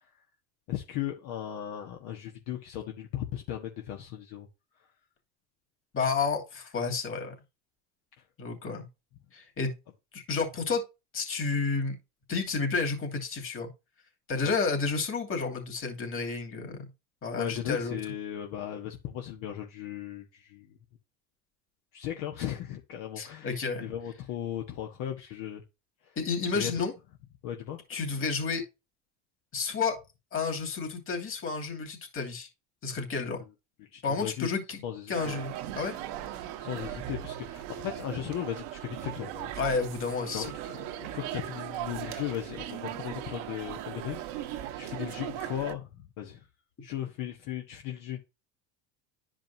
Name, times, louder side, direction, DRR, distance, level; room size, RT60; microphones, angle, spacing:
voice 1, 0.7-4.5 17.4-20.7 21.9-25.6 26.5-26.8 27.4-27.8 33.9-34.5 34.8-35.4 36.6-39.5 40.3-40.5 41.0-45.9 46.2-46.4 46.8-48.2, left 11 dB, 65° left, 2 dB, 1.3 m, -37 dB
voice 2, 5.9-7.3 8.4-8.9 9.3-9.7 10.1-10.8 11.1-12.0 12.3-13.7 14.3-16.8 17.2-18.0 23.2-23.9 26.2-26.9 27.9-28.6 29.5-30.0 30.3-32.5 32.8-33.4 34.0-34.8 35.1-35.9 39.6-40.5, left 4 dB, 35° left, 3 dB, 2.8 m, -31 dB
sound 1, 35.1-45.7, right 12 dB, 70° right, 1.2 m, -38 dB
11.0 x 5.1 x 2.8 m, 0.26 s
supercardioid pair, 95°, 36 cm